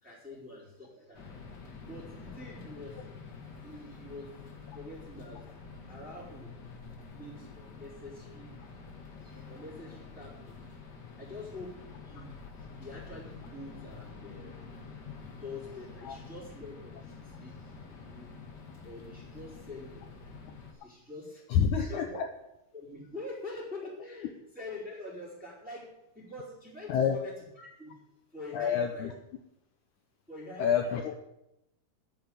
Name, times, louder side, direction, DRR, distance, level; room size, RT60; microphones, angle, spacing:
voice 1, 0.0-1.2 1.8-3.0 3.6-4.3 4.7-5.5 5.9-6.5 7.0-8.6 9.2-10.6 11.2-14.6 15.4-18.3 18.8-20.4 20.7-21.6 21.9-22.2 22.7-28.0 28.3-29.1 30.3-31.0, left 2 dB, ahead, -7 dB, 4.0 m, -45 dB
sound 1, 1.1-20.7, left 4 dB, 45° left, 1.3 m, -48 dB
voice 2, 21.5-22.3 26.9-27.2 28.5-29.1 30.6-31.1, left 7 dB, 90° left, 6 dB, 1.7 m, -28 dB
10.0 x 7.4 x 9.3 m, 0.87 s
omnidirectional pair, 4.5 m